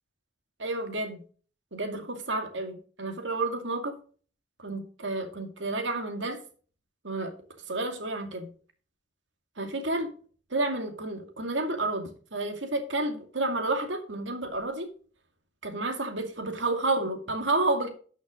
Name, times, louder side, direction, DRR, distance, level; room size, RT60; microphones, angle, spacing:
voice 1, 0.6-1.2 1.7-4.0 4.6-6.4 7.0-7.3 7.7-8.5 9.6-10.1 10.5-14.9 15.6-17.9, right 2 dB, 85° right, 5 dB, 2.3 m, -30 dB
12.5 x 6.3 x 3.7 m, 0.41 s
head